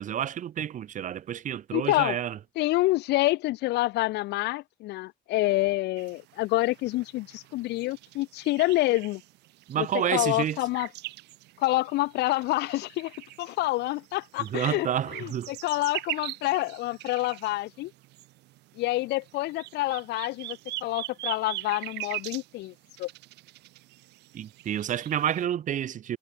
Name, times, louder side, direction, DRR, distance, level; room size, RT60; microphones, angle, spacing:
voice 1, 0.0-2.4 9.7-10.6 14.4-15.5 24.3-26.2, right 10 dB, 50° right, 1.0 m, -29 dB
voice 2, 1.7-2.2 2.6-9.2 9.8-10.9 11.6-14.9 15.1-17.9 18.8-22.7 23.0-23.1, left 18 dB, 85° left, 2.4 m, -27 dB
sound 1, 6.0-25.5, right 18 dB, 85° right, 5.5 m, -42 dB
cardioid pair, 110°, 17 cm